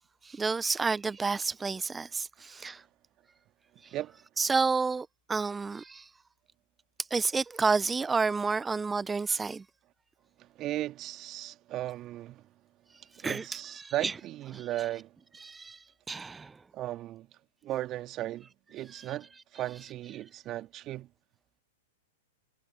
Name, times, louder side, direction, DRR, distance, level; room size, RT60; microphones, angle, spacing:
voice 1, 0.3-2.8 4.4-6.0 7.1-9.6 13.2-13.4 13.8-14.1 14.5-14.7 15.4-15.8 16.1-16.5, right 4 dB, 10° right, 1.2 m, -30 dB
voice 2, 3.8-4.2 10.4-12.4 13.2-15.1 16.7-17.3 17.6-21.1, right 14 dB, 35° right, 2.6 m, -36 dB
figure-of-eight pair, 105°, 0 cm